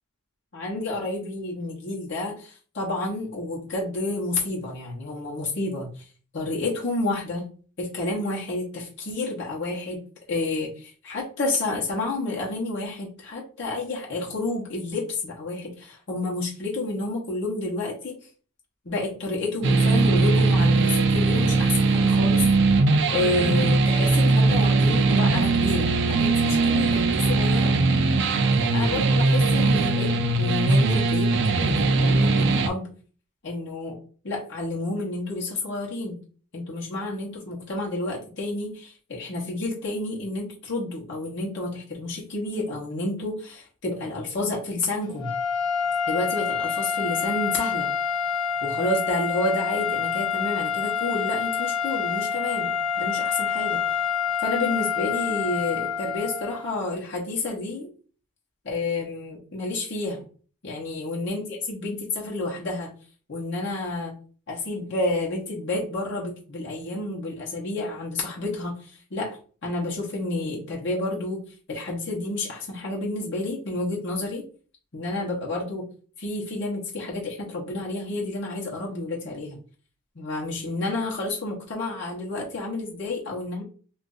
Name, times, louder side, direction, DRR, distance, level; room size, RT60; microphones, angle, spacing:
voice 1, 0.5-6.1 6.3-7.5 7.8-10.0 10.3-18.2 18.8-22.5 23.1-27.8 28.6-31.3 31.6-32.9 33.4-34.0 34.2-36.2 36.5-45.3 46.1-47.9 48.6-53.8 54.4-57.9 58.6-60.3 60.6-62.9 63.3-64.1 64.5-71.4 71.7-74.4 74.9-75.9 76.2-79.6 80.1-83.6, left 2 dB, 60° left, -4 dB, 1.0 m, -30 dB
sound 1, 19.6-32.7, right 3 dB, 55° right, 0.4 m, -20 dB
sound 2, 45.2-56.7, left 6 dB, 25° left, 1.1 m, -27 dB
2.6 x 2.5 x 3.8 m, 0.40 s
head